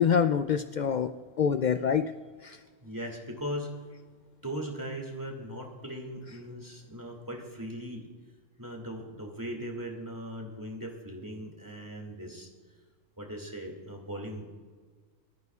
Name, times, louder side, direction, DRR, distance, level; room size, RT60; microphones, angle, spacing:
voice 1, 0.0-2.1 2.4-2.6, left 7 dB, 75° left, 10 dB, 0.4 m, -26 dB
voice 2, 2.8-3.8 4.4-8.1 8.6-12.5 13.2-14.4, equal, 15° right, 1 dB, 2.2 m, -39 dB
23.5 x 14.0 x 2.4 m, 1.5 s
omnidirectional pair, 1.3 m